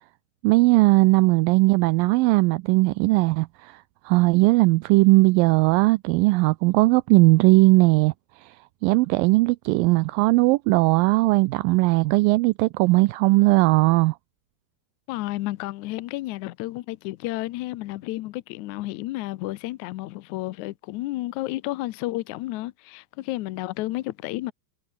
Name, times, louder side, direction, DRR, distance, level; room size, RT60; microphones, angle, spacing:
voice 1, 0.4-8.1 8.4-8.5 8.8-14.2, right 22 dB, 80° right, 2.2 m, -19 dB
voice 2, 15.1-24.5, left 17 dB, 80° left, 1.7 m, -31 dB
omnidirectional pair, 4.2 m